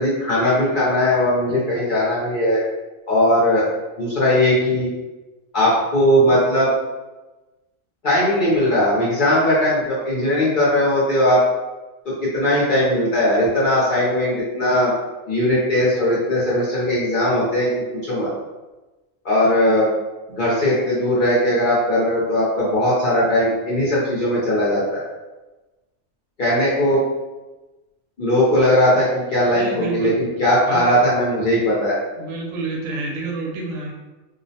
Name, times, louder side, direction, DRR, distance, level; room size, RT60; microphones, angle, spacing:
voice 1, 0.0-2.6 3.1-3.7 4.0-4.9 5.5-6.7 8.0-11.4 12.0-14.9 15.3-18.3 19.2-19.9 20.4-25.0 26.4-27.0 28.2-32.0, left 1 dB, 55° left, -8 dB, 0.6 m, -19 dB
voice 2, 1.5-1.9 29.4-30.1 30.7-30.9 32.2-33.9, right 3 dB, 80° right, 0 dB, 0.9 m, -29 dB
2.4 x 2.0 x 2.7 m, 1.1 s
omnidirectional pair, 1.4 m